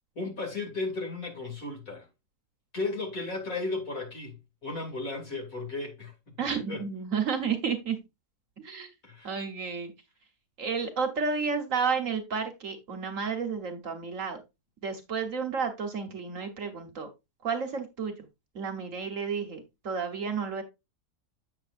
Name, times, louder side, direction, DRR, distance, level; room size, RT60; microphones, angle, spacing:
voice 1, 0.1-2.1 2.7-6.1 6.5-6.8 9.0-9.4, left 3 dB, 55° left, 3.0 m, -35 dB
voice 2, 6.4-8.0 8.6-8.9 9.2-9.9 10.6-14.4 14.8-17.1 17.4-18.1 18.5-20.6, right 5 dB, 55° right, 1.4 m, -31 dB
8.2 x 7.0 x 2.5 m
omnidirectional pair, 1.7 m